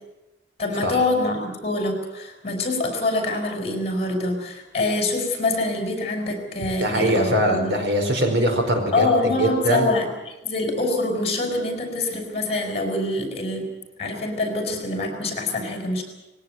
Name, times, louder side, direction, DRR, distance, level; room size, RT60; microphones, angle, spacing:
voice 1, 0.6-7.7 8.9-13.7 14.0-16.0, left 2 dB, 35° left, 4 dB, 5.8 m, -25 dB
voice 2, 6.8-9.1 9.4-9.9, right 1 dB, 70° right, 4 dB, 4.8 m, -21 dB
21.0 x 17.5 x 9.3 m, 1.0 s
head